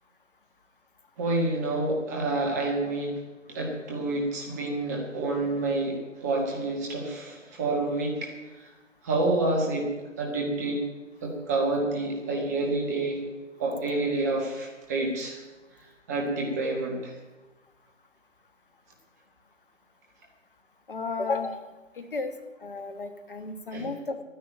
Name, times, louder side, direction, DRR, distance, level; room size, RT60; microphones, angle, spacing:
voice 1, 1.2-3.1 3.5-8.3 9.0-9.9 10.2-10.8 11.2-13.2 13.6-15.4 16.1-17.1 23.7-23.9, right 2 dB, 15° right, 0 dB, 1.5 m, -28 dB
voice 2, 20.9-21.6 22.1-22.3 22.6-24.2, left 3 dB, 45° left, 9 dB, 1.5 m, -32 dB
11.0 x 10.5 x 9.1 m, 1.1 s
figure-of-eight pair, 150°, 38 cm